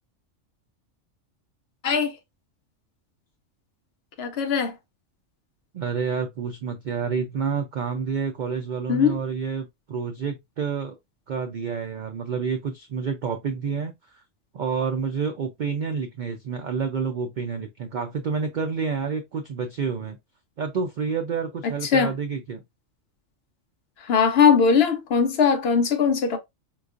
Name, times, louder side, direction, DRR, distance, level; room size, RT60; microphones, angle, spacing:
voice 1, 1.8-2.2 4.2-4.7 8.9-9.2 21.6-22.1 24.0-26.4, left 6 dB, 60° left, 0.7 m, -20 dB
voice 2, 5.7-11.0 11.3-14.2 14.5-20.2 20.6-22.6, right 5 dB, 90° right, 0.4 m, -29 dB
4.5 x 2.3 x 2.4 m
omnidirectional pair, 1.4 m